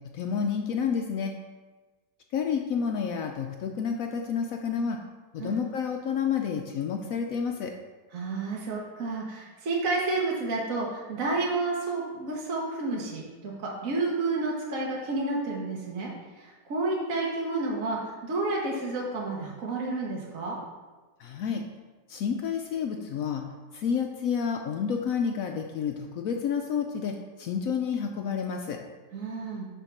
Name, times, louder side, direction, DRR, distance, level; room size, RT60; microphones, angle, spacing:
voice 1, 0.1-1.3 2.3-5.0 5.3-7.7 21.2-21.6 22.1-23.4 23.7-28.8, left 6 dB, 80° left, 3 dB, 0.7 m, -29 dB
voice 2, 8.1-16.1 16.4-20.6 29.1-29.7, right 3 dB, 50° right, -3 dB, 1.3 m, -30 dB
6.8 x 3.6 x 5.9 m, 1.3 s
omnidirectional pair, 1.9 m